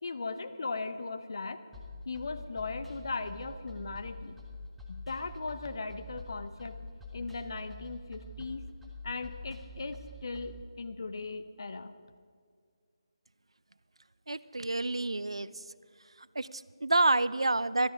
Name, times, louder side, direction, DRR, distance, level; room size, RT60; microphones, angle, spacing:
voice 1, 0.0-1.6 2.1-4.4 4.9-6.8 7.1-8.6 9.0-11.9, left 3 dB, 45° left, 10 dB, 0.7 m, -38 dB
sound 1, 1.7-10.6, left 1 dB, 5° right, 0.9 m, -46 dB
voice 2, 14.3-15.6 16.4-17.9, right 2 dB, 70° right, 17 dB, 0.5 m, -28 dB
14.5 x 13.0 x 5.2 m, 2.1 s
figure-of-eight pair, 155°, 3 cm